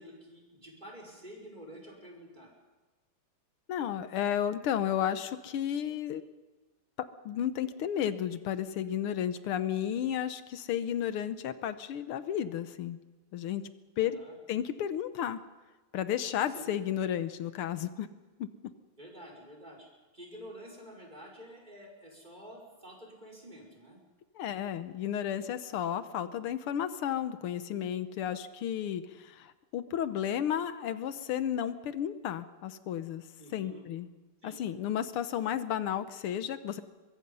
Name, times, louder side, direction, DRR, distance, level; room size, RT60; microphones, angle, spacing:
voice 1, 0.0-2.5 14.0-14.4 16.5-16.7 19.0-24.0 33.4-33.8 34.4-34.6, equal, 20° right, 0 dB, 5.7 m, -49 dB
voice 2, 3.7-6.2 7.3-13.0 13.3-13.6 14.0-14.2 14.5-15.4 15.9-18.1 18.4-18.5 24.4-33.2 33.5-34.1 34.4-36.8, left 10 dB, 85° left, 12 dB, 1.8 m, -33 dB
23.5 x 23.0 x 5.5 m, 1.2 s
omnidirectional pair, 2.4 m